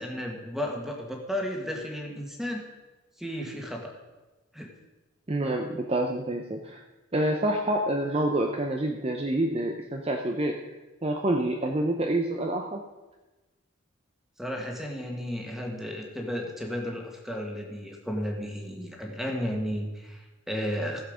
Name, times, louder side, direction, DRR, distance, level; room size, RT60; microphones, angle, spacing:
voice 1, 0.0-2.6 3.2-3.9 4.5-4.7 14.4-21.0, equal, ahead, 0 dB, 1.7 m, -33 dB
voice 2, 5.3-6.8 7.1-10.6 11.0-12.8, right 1 dB, 30° right, 3 dB, 0.7 m, -27 dB
16.0 x 7.2 x 5.1 m, 1.1 s
head